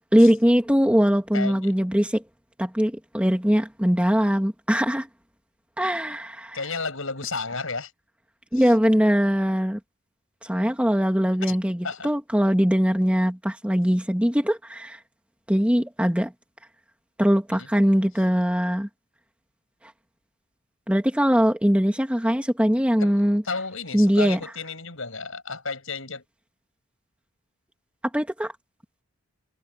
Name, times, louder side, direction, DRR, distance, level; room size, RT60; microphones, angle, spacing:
voice 1, 0.1-2.2 2.6-5.1 5.8-6.6 8.5-9.8 10.4-15.0 15.5-16.3 17.2-18.9 20.9-23.4 23.9-24.4 28.1-28.5, equal, 5° right, 1.9 m, -21 dB
voice 2, 1.3-1.7 6.5-7.9 8.6-8.7 11.5-11.6 11.8-12.1 17.5-17.7 23.0-23.2 23.4-26.2, left 4 dB, 70° left, 7.1 m, -32 dB
head